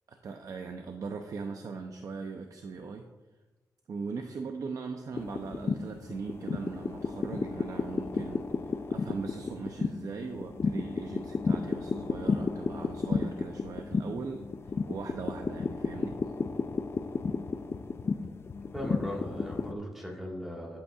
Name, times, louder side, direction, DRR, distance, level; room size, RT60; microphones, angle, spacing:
voice 1, 0.1-3.1 3.9-14.5 14.9-16.2, right 4 dB, 60° right, 5 dB, 0.6 m, -39 dB
sound 1, 5.1-19.7, left 4 dB, 35° left, 0.4 m, -33 dB
voice 2, 18.7-20.8, equal, 5° right, -3 dB, 1.7 m, -38 dB
11.0 x 8.3 x 2.4 m, 1.2 s
wide cardioid pair, 145°, 7 cm